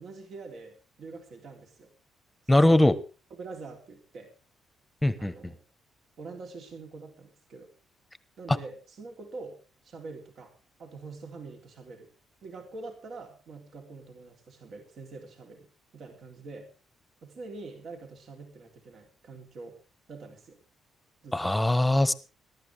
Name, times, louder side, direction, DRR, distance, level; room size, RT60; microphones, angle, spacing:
voice 1, 0.0-1.9 3.3-4.3 5.2-5.6 6.2-7.7 8.4-10.5 10.8-12.1 12.4-16.7 17.2-19.8 20.1-20.6 21.2-21.6, right 3 dB, 60° right, 3 dB, 3.5 m, -45 dB
voice 2, 2.5-3.0 5.0-5.3 21.3-22.1, left 1 dB, 10° left, 15 dB, 1.2 m, -21 dB
21.0 x 12.0 x 3.5 m, 0.33 s
cardioid pair, 90°, 0 cm